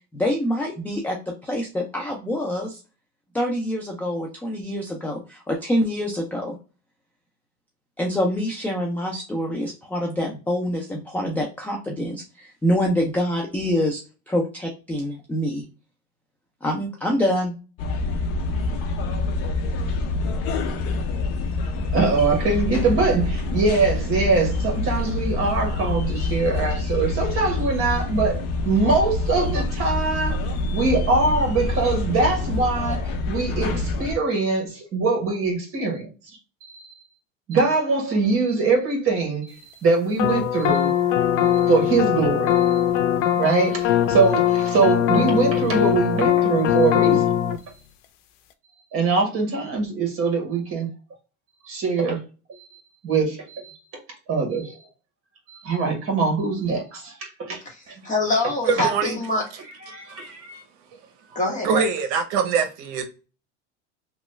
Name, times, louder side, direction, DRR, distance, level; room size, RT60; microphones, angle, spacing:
voice 1, 0.1-2.8 3.3-6.6 8.0-14.0 14.3-15.6 16.6-17.6, equal, 5° left, 0.3 m, -26 dB
sound 1, 17.8-34.2, left 2 dB, 40° left, 0.6 m, -26 dB
voice 2, 21.9-36.9 37.5-41.0 41.5-42.8 43.3-47.3 47.7-47.8 48.9-50.9 51.6-52.2 52.5-53.9 54.3-54.9 55.5-57.6 57.9-58.1 58.4-58.5 58.8-58.9 59.8-60.6, right 4 dB, 40° right, 1.4 m, -23 dB
sound 2, 40.2-47.6, left 10 dB, 80° left, 0.6 m, -21 dB
voice 3, 58.0-59.4 61.3-61.8, left 2 dB, 20° left, 1.1 m, -24 dB
voice 4, 58.7-59.2 60.1-60.2 61.6-63.1, right 6 dB, 70° right, 0.8 m, -23 dB
3.0 x 2.3 x 3.0 m
supercardioid pair, 135°, 36 cm